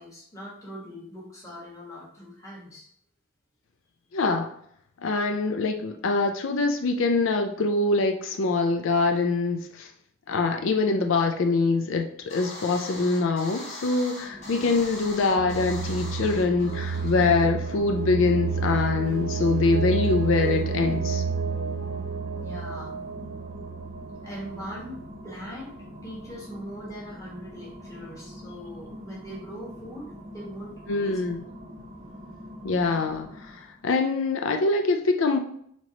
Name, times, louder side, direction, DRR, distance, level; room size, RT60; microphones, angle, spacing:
voice 1, 0.0-2.8 22.4-22.9 24.2-25.0 25.2-25.8 26.0-31.2, equal, 15° left, -5 dB, 1.3 m, -41 dB
voice 2, 4.1-4.5 5.0-9.9 10.3-21.2 30.9-31.4 32.6-35.4, left 3 dB, 70° left, 5 dB, 0.4 m, -24 dB
sound 1, 12.3-17.7, left 1 dB, 35° left, 1.2 m, -41 dB
sound 2, 14.1-33.8, equal, 25° right, 0.7 m, -44 dB
sound 3, 15.4-25.2, right 5 dB, 80° right, 0.4 m, -30 dB
4.4 x 3.0 x 2.8 m, 0.68 s
head